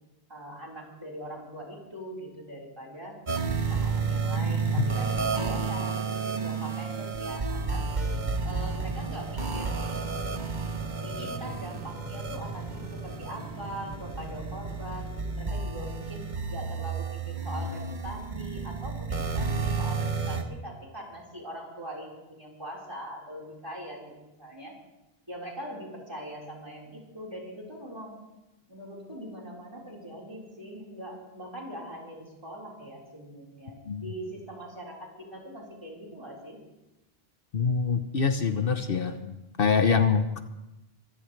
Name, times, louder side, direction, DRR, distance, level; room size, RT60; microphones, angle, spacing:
voice 1, 0.3-3.2 3.6-7.8 8.4-9.8 11.0-24.7 25.3-28.2 28.7-36.6, equal, 25° right, -2 dB, 4.5 m, -42 dB
sound 1, 3.3-20.4, right 4 dB, 45° right, 1.4 m, -31 dB
sound 2, 7.6-15.7, equal, 35° left, 5.2 m, -43 dB
voice 2, 37.5-40.4, left 5 dB, 65° left, 8 dB, 1.0 m, -25 dB
24.5 x 16.0 x 3.3 m, 0.95 s
omnidirectional pair, 1.0 m